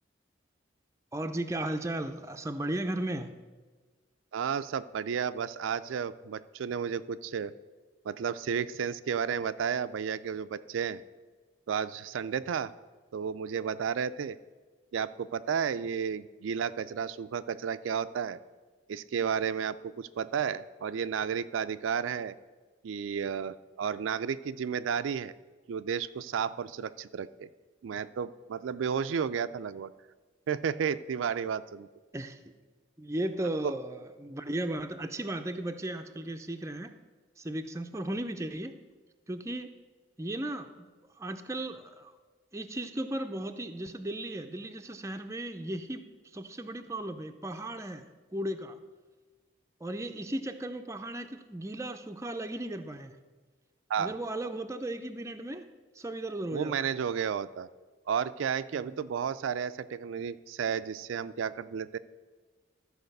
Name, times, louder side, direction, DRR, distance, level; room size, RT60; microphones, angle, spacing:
voice 1, 1.1-3.3 32.1-32.4 33.0-36.9 37.4-38.7 39.3-39.7 40.2-40.9 41.2-42.1 42.5-46.0 46.3-48.8 49.8-53.2 54.0-55.7 55.9-56.9 58.7-59.0, right 1 dB, 15° right, 6 dB, 0.5 m, -36 dB
voice 2, 4.3-7.5 8.0-11.0 11.7-12.7 13.1-14.4 14.9-18.4 18.9-22.4 22.8-25.3 25.7-27.5 27.8-29.9 30.5-31.9 53.9-54.1 56.5-57.7 58.1-62.0, right 7 dB, 85° right, 13 dB, 0.4 m, -32 dB
13.0 x 4.8 x 6.5 m, 1.3 s
head